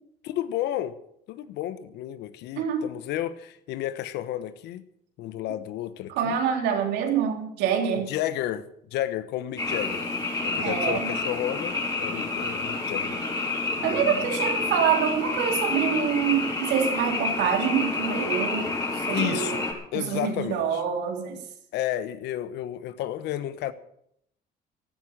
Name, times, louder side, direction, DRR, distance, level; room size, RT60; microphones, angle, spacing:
voice 1, 0.2-0.9 1.3-4.8 5.2-6.3 7.9-10.1 10.4-13.2 13.8-14.3 19.1-19.6 19.9-20.8 21.7-23.7, left 12 dB, 85° left, 1.2 m, -32 dB
voice 2, 6.2-8.1 10.6-11.1 13.8-19.6 19.9-21.4, right 8 dB, 90° right, 3.5 m, -26 dB
Frog, 9.6-19.7, left 3 dB, 20° left, 5.9 m, -29 dB
15.0 x 12.5 x 6.7 m
cardioid pair, 110°, 17 cm